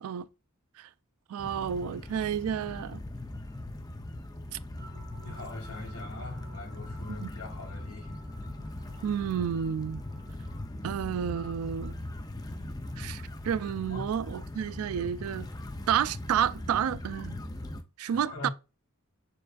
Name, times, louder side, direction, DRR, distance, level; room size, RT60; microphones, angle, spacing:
voice 1, 1.3-3.0 7.2-7.3 9.0-10.0 10.8-11.9 13.0-15.5 15.9-17.4 18.0-18.5, right 8 dB, 75° right, 0.3 m, -30 dB
sound 1, 1.4-17.8, left 1 dB, 15° left, 0.4 m, -40 dB
sound 2, 4.8-10.7, right 2 dB, 55° right, 1.1 m, -54 dB
voice 2, 5.2-8.1 13.9-14.1 18.1-18.5, left 2 dB, 75° left, 1.8 m, -42 dB
6.7 x 2.5 x 2.3 m
head